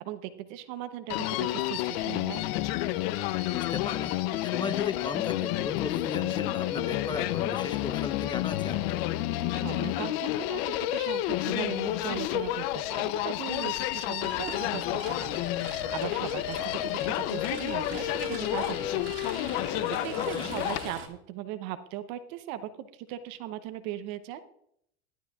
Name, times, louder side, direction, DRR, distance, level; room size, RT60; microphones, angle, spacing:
voice 1, 0.0-2.4 9.5-24.4, right 12 dB, 65° right, 11 dB, 0.9 m, -39 dB
Human voice, 1.1-20.9, left 14 dB, 70° left, 0.7 m, -30 dB
voice 2, 3.5-9.0 20.1-20.5, left 4 dB, 15° left, 9 dB, 0.9 m, -37 dB
sound 1, 14.2-21.1, right 6 dB, 40° right, 2.1 m, -43 dB
14.5 x 12.0 x 2.4 m, 0.71 s
supercardioid pair, 115°, 32 cm